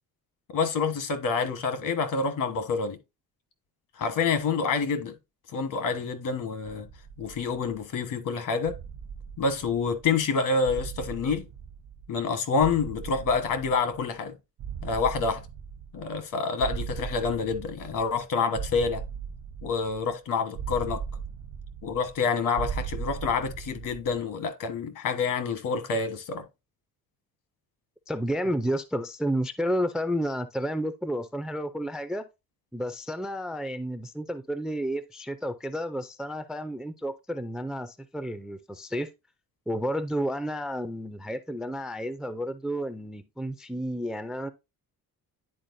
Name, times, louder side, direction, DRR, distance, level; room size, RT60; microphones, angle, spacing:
voice 1, 0.5-3.0 3.9-5.1 5.5-6.9 7.2-8.8 9.4-11.4 12.1-14.3 14.8-15.4 15.9-19.0 19.6-21.0 21.8-26.4, left 5 dB, 65° left, 1.3 m, -27 dB
sound 1, 6.6-8.0 8.6-10.2 10.6-12.3 12.6-14.2 14.6-16.3 16.6-18.2 18.5-20.1 20.5-22.2 22.5-24.2, right 7 dB, 65° right, 0.8 m, -38 dB
voice 2, 28.1-32.3 32.7-39.1 39.7-44.5, equal, ahead, 0.3 m, -31 dB
10.0 x 4.4 x 2.6 m
cardioid pair, 165°, 34 cm